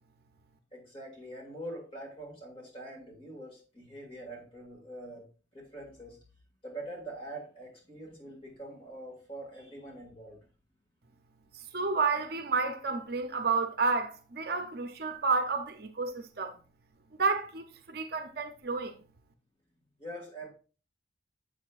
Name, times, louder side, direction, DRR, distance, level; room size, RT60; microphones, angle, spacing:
voice 1, 0.7-5.3 5.5-6.2 6.6-10.5 20.0-20.5, right 1 dB, 30° left, 2.1 m, -44 dB
voice 2, 11.7-16.5 17.2-19.0, right 4 dB, 55° right, 0.6 m, -30 dB
7.5 x 6.4 x 2.4 m
head